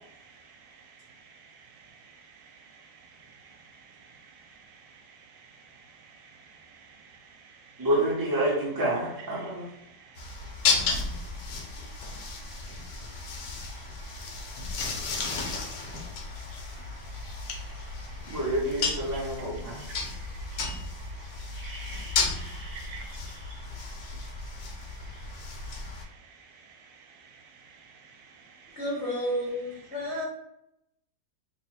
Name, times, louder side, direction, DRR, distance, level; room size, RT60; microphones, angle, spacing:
voice 1, 0.0-7.9 9.2-18.6 19.1-28.8 29.9-30.3, right 5 dB, 75° right, 3 dB, 1.2 m, -53 dB
voice 2, 7.8-9.6 18.3-19.9 21.5-23.0, right 1 dB, 35° right, -6 dB, 0.3 m, -29 dB
sound 1, 10.2-26.0, left 4 dB, 70° left, 1.3 m, -33 dB
voice 3, 28.8-30.2, equal, 50° left, -4 dB, 0.8 m, -31 dB
3.3 x 2.1 x 4.1 m, 0.83 s
omnidirectional pair, 2.0 m